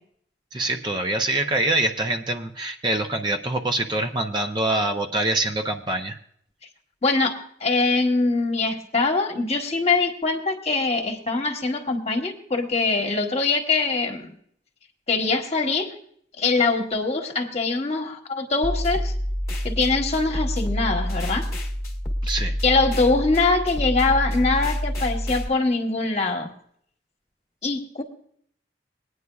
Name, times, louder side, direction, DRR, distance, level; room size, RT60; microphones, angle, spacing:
voice 1, 0.5-6.2 22.2-22.6 27.6-27.7, right 2 dB, 25° right, 4 dB, 0.5 m, -25 dB
voice 2, 7.0-14.3 15.1-15.9 16.4-19.1 19.6-21.5 22.6-26.5 27.6-28.0, left 3 dB, 35° left, 4 dB, 1.1 m, -23 dB
sound 1, 18.6-25.5, equal, 15° left, 1.2 m, -27 dB
22.5 x 9.5 x 2.3 m, 0.64 s
head